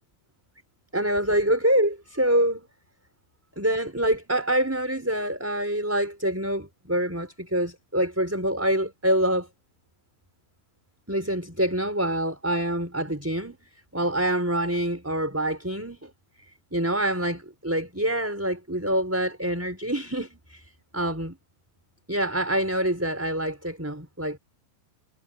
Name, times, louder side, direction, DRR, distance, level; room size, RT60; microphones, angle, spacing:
voice 1, 0.9-2.7 3.6-9.5 11.1-13.6 13.9-16.1 16.7-20.6 20.9-21.4 22.1-24.4, right 1 dB, 5° right, 4.7 m, -26 dB
omnidirectional pair, 4.2 m